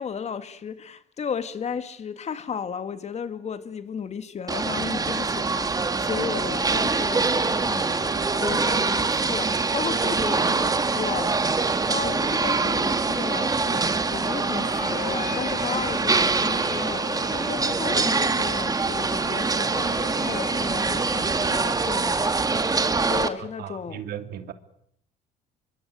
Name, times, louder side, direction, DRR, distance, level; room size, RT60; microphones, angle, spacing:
voice 1, 0.0-11.4 11.9-24.0, left 6 dB, 40° left, 2.1 m, -34 dB
sound 1, 4.5-23.3, right 4 dB, 20° right, 2.0 m, -24 dB
sound 2, 9.2-23.3, left 10 dB, 80° left, 3.8 m, -41 dB
voice 2, 23.6-24.5, right 10 dB, 70° right, 2.8 m, -36 dB
25.5 x 24.0 x 9.3 m
cardioid pair, 110°, 17 cm